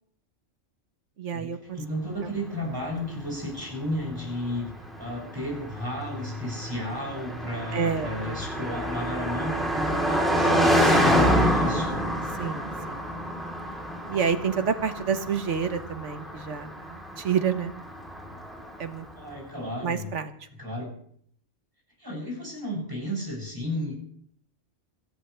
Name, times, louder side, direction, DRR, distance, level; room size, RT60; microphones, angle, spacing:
voice 1, 1.2-1.8 7.7-8.1 10.4-10.8 12.4-13.1 14.1-17.7 18.8-19.1 19.8-20.5, right 6 dB, 85° right, 10 dB, 1.5 m, -29 dB
voice 2, 1.7-4.7 5.0-12.0 19.2-20.1 20.6-20.9 22.0-23.9, left 1 dB, 20° right, -4 dB, 7.9 m, -33 dB
Car passing by, 2.7-19.1, equal, ahead, 3.6 m, -28 dB
26.5 x 13.5 x 3.4 m, 0.65 s
omnidirectional pair, 1.2 m